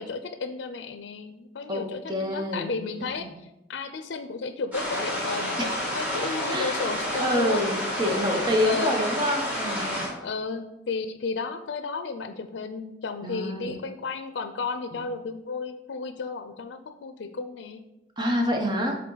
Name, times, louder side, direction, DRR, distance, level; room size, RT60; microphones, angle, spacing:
voice 1, 0.0-3.3 3.7-7.6 8.6-9.0 10.2-17.8, left 4 dB, 85° left, 9 dB, 0.4 m, -33 dB
voice 2, 1.7-2.8 3.2-3.3 5.6-5.8 6.5-10.0 13.2-13.7 14.9-15.0 18.2-19.0, left 1 dB, 25° right, 2 dB, 0.9 m, -27 dB
sound 1, 4.7-10.1, equal, 10° right, 1.6 m, -29 dB
7.4 x 3.6 x 3.9 m, 0.90 s
head